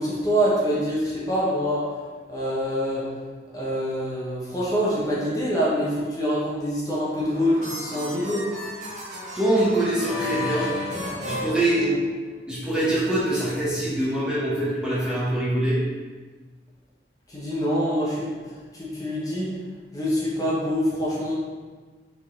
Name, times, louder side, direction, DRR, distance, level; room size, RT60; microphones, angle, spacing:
voice 1, 0.0-1.9 2.3-3.0 3.5-8.5 11.8-12.0 17.3-18.3 18.7-19.5 19.9-21.3, equal, 20° left, -7 dB, 1.2 m, -25 dB
sound 1, 7.0-12.4, left 2 dB, 40° right, 1.2 m, -34 dB
voice 2, 9.3-10.8 11.2-11.8 12.5-15.8, right 1 dB, 5° right, -9 dB, 1.2 m, -24 dB
6.3 x 4.0 x 3.9 m, 1.4 s
head